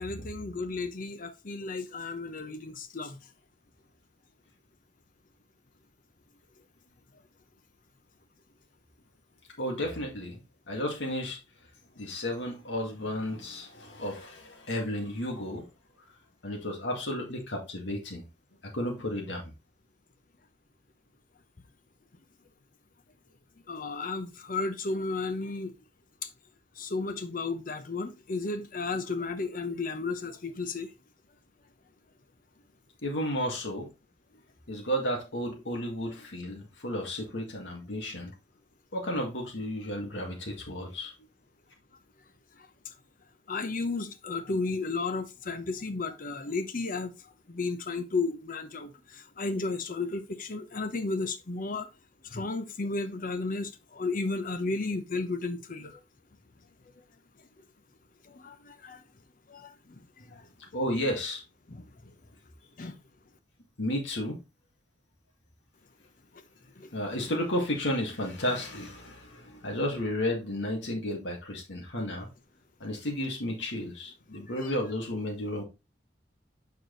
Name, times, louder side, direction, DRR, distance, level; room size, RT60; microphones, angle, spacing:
voice 1, 0.0-3.2 23.7-25.7 26.2-26.3 26.8-30.9 43.5-47.1 47.5-51.9 52.2-56.0 58.2-59.0 59.5-60.0 60.3-60.4 61.7-61.8 62.8-62.9 66.8-66.9 74.6-74.7, left 3 dB, 50° left, 0.8 m, -33 dB
voice 2, 9.6-10.4 10.7-11.4 12.0-15.6 16.4-18.2 18.7-19.5 33.0-33.9 34.7-38.3 38.9-41.1 60.7-61.4 63.8-64.4 66.9-72.3 72.8-75.6, left 1 dB, 85° left, 1.9 m, -32 dB
6.7 x 4.7 x 3.8 m
head